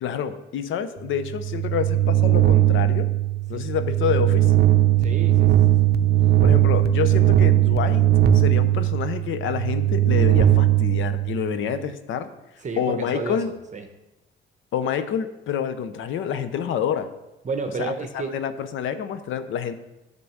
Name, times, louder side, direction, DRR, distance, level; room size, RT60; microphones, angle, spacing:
voice 1, 0.0-3.1 3.5-4.5 6.4-8.1 8.3-12.3 12.8-13.5 14.7-17.1 17.8-19.7, left 8 dB, 80° left, 11 dB, 0.8 m, -27 dB
sound 1, 1.1-11.7, right 12 dB, 55° right, 0.6 m, -19 dB
voice 2, 5.0-5.8 12.6-13.4 13.7-13.8 17.4-18.3, right 4 dB, 35° right, 5 dB, 1.0 m, -31 dB
9.6 x 3.8 x 7.2 m, 1.0 s
cardioid pair, 90°, 20 cm